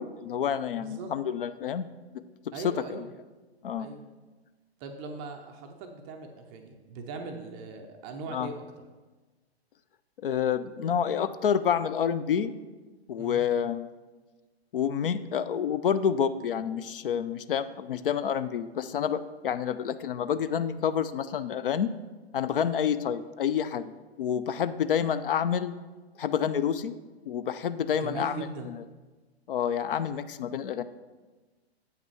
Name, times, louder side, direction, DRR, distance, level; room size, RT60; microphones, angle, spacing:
voice 1, 0.0-1.9 2.6-3.0 3.6-3.9 8.3-8.5 10.2-12.5 13.1-13.9 14.7-21.9 22.3-23.9 24.2-25.7 26.2-26.9 27.3-28.7 29.5-30.8, left 8 dB, 55° left, 13 dB, 0.5 m, -28 dB
voice 2, 0.7-1.1 2.5-3.1 3.8-4.0 4.8-8.6 13.2-13.4 28.0-28.7, right 4 dB, 15° right, 4 dB, 0.4 m, -40 dB
8.2 x 5.8 x 4.5 m, 1.3 s
figure-of-eight pair, 120°, 32 cm